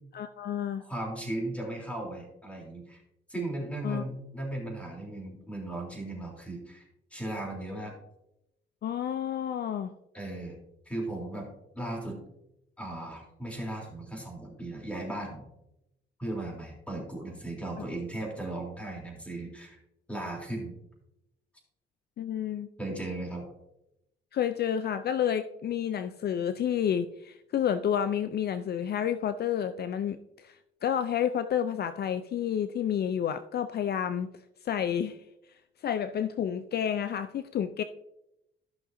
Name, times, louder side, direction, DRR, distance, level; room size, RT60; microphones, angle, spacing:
voice 1, 0.1-0.8 3.8-4.0 8.8-9.9 22.2-22.7 24.3-34.3 34.6-35.2 35.8-37.8, left 9 dB, 55° left, 11 dB, 0.5 m, -30 dB
voice 2, 0.8-3.0 3.3-6.8 7.1-7.9 10.1-10.6 10.8-12.2 12.8-15.4 16.2-19.8 20.1-20.7 22.8-23.4, right 1 dB, 5° left, -1 dB, 3.4 m, -36 dB
13.5 x 6.0 x 2.7 m, 0.85 s
cardioid pair, 90°, 20 cm